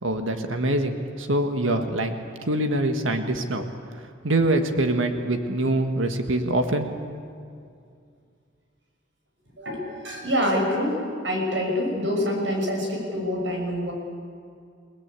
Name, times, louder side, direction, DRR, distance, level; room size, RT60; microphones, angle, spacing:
voice 1, 0.0-2.1 2.4-3.7 4.2-6.9, right 1 dB, 90° right, 6 dB, 1.8 m, -24 dB
voice 2, 9.6-13.9, equal, 70° right, 1 dB, 6.9 m, -26 dB
30.0 x 19.0 x 8.5 m, 2.3 s
head